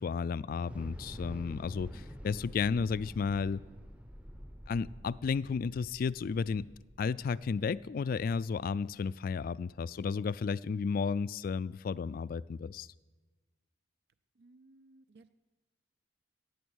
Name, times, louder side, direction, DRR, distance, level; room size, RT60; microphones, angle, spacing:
voice 1, 0.0-3.6 4.7-6.7 7.0-12.9, left 5 dB, 50° left, 19 dB, 0.3 m, -33 dB
Thunder / Explosion, 0.6-8.8, equal, 5° right, 0.7 m, -48 dB
voice 2, 14.4-15.3, right 2 dB, 60° right, 12 dB, 0.4 m, -59 dB
16.0 x 8.6 x 6.3 m, 1.3 s
head